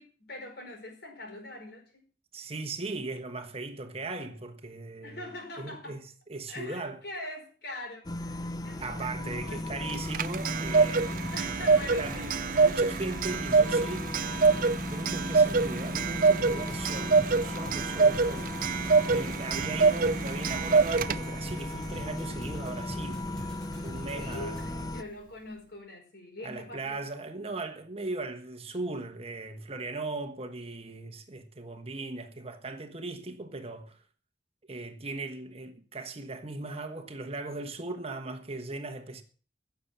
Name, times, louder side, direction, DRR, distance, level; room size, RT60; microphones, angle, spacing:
voice 1, 0.0-2.0 5.0-6.0 6.5-10.0 11.3-12.4 24.1-27.1, left 2 dB, 60° left, 4.8 m, -43 dB
voice 2, 2.3-5.3 5.6-7.0 8.8-11.5 12.0-14.2 14.7-23.3 23.8-24.9 26.4-34.0 34.7-39.2, right 3 dB, 35° right, 1.3 m, -38 dB
sound 1, 8.0-25.0, left 1 dB, 20° left, 0.7 m, -36 dB
Clock, 9.9-21.5, right 4 dB, 50° right, 0.5 m, -25 dB
sound 2, 16.4-24.8, equal, 5° left, 3.2 m, -46 dB
16.0 x 7.1 x 7.4 m
head